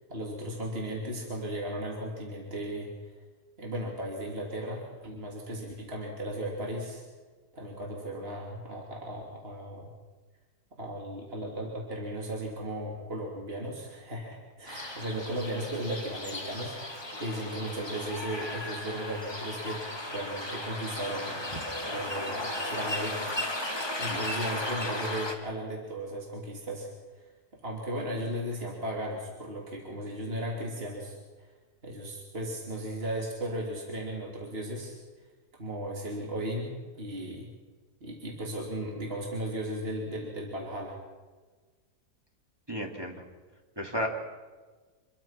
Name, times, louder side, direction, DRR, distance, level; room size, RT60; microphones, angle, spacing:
voice 1, 0.1-2.9 3.6-7.1 7.5-9.9 10.8-21.4 21.9-23.3 24.0-26.9 27.1-27.2 27.5-31.5 31.8-35.0 35.6-37.5 38.0-41.0, right 1 dB, 35° right, -1 dB, 3.4 m, -36 dB
sound 1, 14.7-25.4, left 1 dB, 15° left, 2.4 m, -35 dB
voice 2, 42.7-43.2 43.8-44.2, equal, 15° right, 0 dB, 3.0 m, -33 dB
26.5 x 22.0 x 6.0 m, 1.4 s
omnidirectional pair, 1.7 m